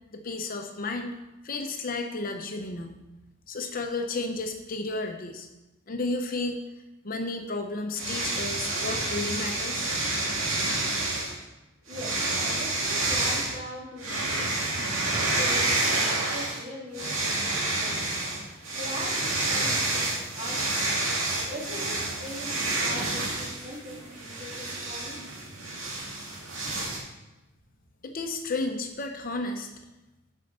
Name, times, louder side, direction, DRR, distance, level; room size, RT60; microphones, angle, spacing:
voice 1, 0.1-1.1 1.4-3.0 3.5-5.5 5.9-6.6 7.0-9.9 28.0-29.7, left 2 dB, 45° left, 5 dB, 0.7 m, -32 dB
sound 1, 8.0-11.3 11.9-13.5 14.0-16.6 16.9-27.0, right 2 dB, 85° right, 2.2 m, -29 dB
voice 2, 11.9-14.8 15.3-18.0 18.8-20.8 21.4-25.2, left 1 dB, 35° right, -5 dB, 3.0 m, -41 dB
7.6 x 5.5 x 6.6 m, 1.0 s
head